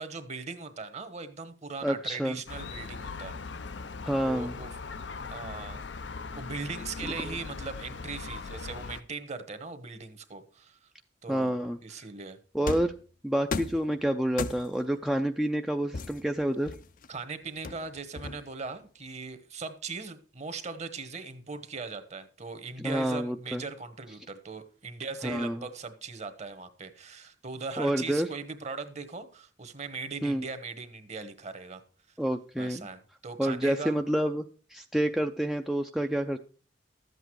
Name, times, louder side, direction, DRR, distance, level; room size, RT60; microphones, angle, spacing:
voice 1, 0.0-3.4 4.2-4.7 5.3-5.8 6.3-10.8 11.2-12.4 17.1-31.8 32.6-34.0, right 4 dB, 40° right, 11 dB, 1.2 m, -39 dB
voice 2, 1.8-2.4 4.0-4.6 7.2-7.4 11.3-11.8 12.5-12.9 13.2-16.7 22.8-23.6 25.2-25.6 27.8-28.3 30.2-30.5 32.2-32.9 33.4-34.5 34.7-36.4, right 1 dB, ahead, 5 dB, 0.4 m, -28 dB
Gull seagull, 2.5-9.0, left 4 dB, 90° left, 0.7 m, -40 dB
sound 1, 12.7-13.0 13.5-13.9 14.4-14.9 15.9-17.1 17.6-18.7, left 4 dB, 50° left, 0.6 m, -36 dB
13.0 x 8.1 x 4.7 m, 0.37 s
head